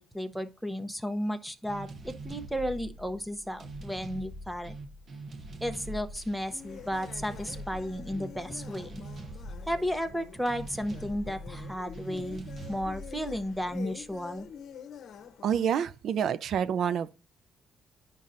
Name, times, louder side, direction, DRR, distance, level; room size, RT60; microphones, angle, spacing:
voice 1, 0.0-4.7 5.6-9.0 9.7-14.5, equal, ahead, 0.7 m, -34 dB
sound 1, 1.7-14.4, right 1 dB, 50° right, 0.9 m, -43 dB
sound 2, 6.5-15.9, left 7 dB, 70° left, 0.8 m, -47 dB
voice 2, 15.4-17.1, right 8 dB, 70° right, 0.5 m, -28 dB
9.8 x 5.3 x 2.6 m
cardioid pair, 90°, 0 cm